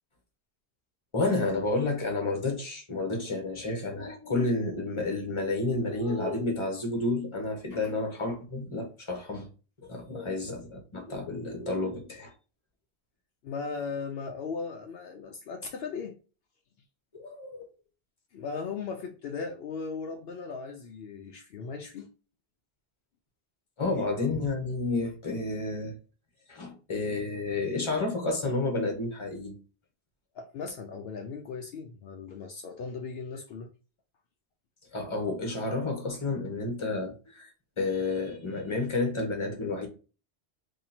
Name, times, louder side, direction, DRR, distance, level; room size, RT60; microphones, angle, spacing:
voice 1, 1.1-9.5 9.8-12.3 17.1-17.7 23.8-26.0 26.5-29.5 34.9-39.9, left 2 dB, 30° left, 1.0 m, -30 dB
voice 2, 13.4-16.2 18.3-22.1 30.3-33.7, left 5 dB, 70° left, 0.8 m, -37 dB
2.8 x 2.8 x 4.0 m
omnidirectional pair, 1.1 m